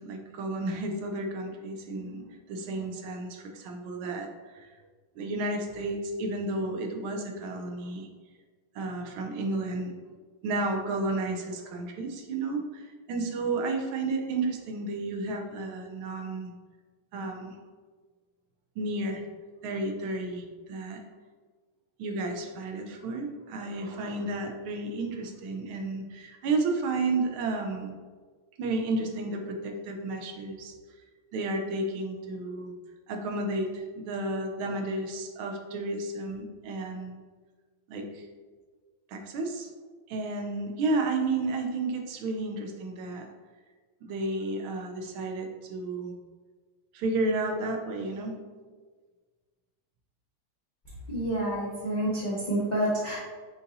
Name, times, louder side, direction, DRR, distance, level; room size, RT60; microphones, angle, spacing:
voice 1, 0.0-4.7 5.2-8.1 8.7-9.9 10.4-16.5 17.1-17.5 18.8-19.2 19.6-21.0 22.0-27.9 28.6-30.7 31.3-32.7 33.1-37.2 37.9-38.3 39.1-39.7 40.1-43.3 44.0-46.2 46.9-48.4, right 2 dB, 85° right, 3 dB, 1.5 m, -32 dB
voice 2, 51.1-53.2, right 1 dB, 65° left, -8 dB, 0.4 m, -28 dB
6.6 x 2.7 x 2.6 m, 1.5 s
omnidirectional pair, 2.2 m